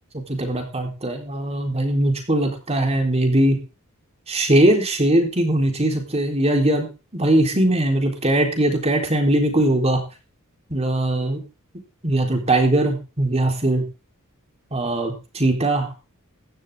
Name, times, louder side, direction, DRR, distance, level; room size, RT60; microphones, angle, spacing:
voice 1, 0.3-3.6 4.3-6.9 7.1-10.0 10.7-11.4 12.0-13.8 14.7-15.9, right 1 dB, 30° right, 3 dB, 4.0 m, -20 dB
15.5 x 12.0 x 3.8 m, 0.32 s
head